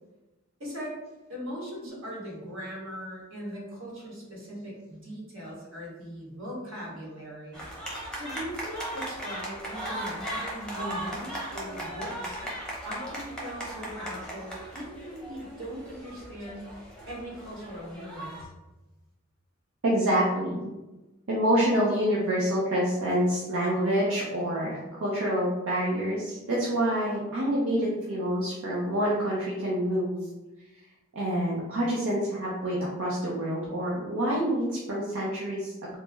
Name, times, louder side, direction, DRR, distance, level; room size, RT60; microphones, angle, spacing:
voice 1, 0.6-1.0 1.3-7.6 8.1-12.4 12.8-16.7 17.1-18.5, equal, 70° right, -5 dB, 1.2 m, -40 dB
sound 1, 7.5-18.4, right 1 dB, 5° left, 0.7 m, -37 dB
voice 2, 19.8-20.7 21.3-30.3 31.1-36.0, equal, 90° right, -6 dB, 0.6 m, -27 dB
3.1 x 2.0 x 3.3 m, 1.1 s
head